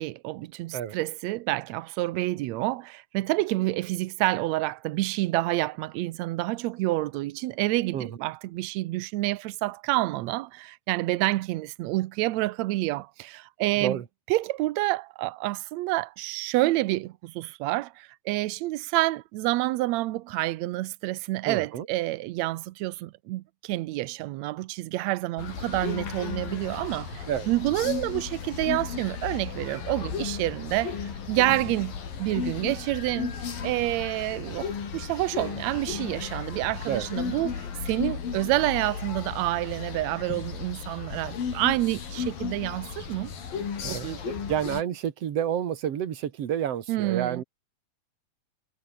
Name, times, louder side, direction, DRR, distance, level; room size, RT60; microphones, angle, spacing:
voice 1, 0.0-14.0 14.3-43.3 43.9-44.4 46.9-47.4, right 18 dB, 90° right, 1.5 m, -28 dB
voice 2, 21.4-21.9 27.3-27.5 36.9-37.1 43.8-47.4, right 9 dB, 50° right, 2.5 m, -29 dB
sound 1, 25.4-44.8, left 6 dB, 85° left, 5.5 m, -35 dB
omnidirectional pair, 4.0 m